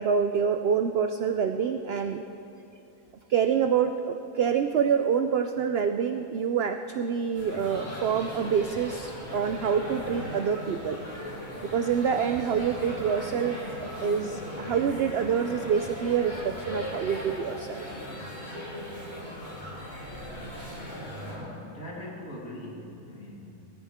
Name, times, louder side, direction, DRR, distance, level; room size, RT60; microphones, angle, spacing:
voice 1, 0.0-2.2 3.3-11.0 11.6-18.0, right 7 dB, 65° right, 7 dB, 0.6 m, -27 dB
sound 1, 7.3-21.4, equal, 45° left, 3.9 m, -38 dB
voice 2, 21.2-23.7, left 1 dB, 60° left, -3 dB, 2.7 m, -41 dB
20.5 x 14.0 x 3.6 m, 2.9 s
omnidirectional pair, 1.6 m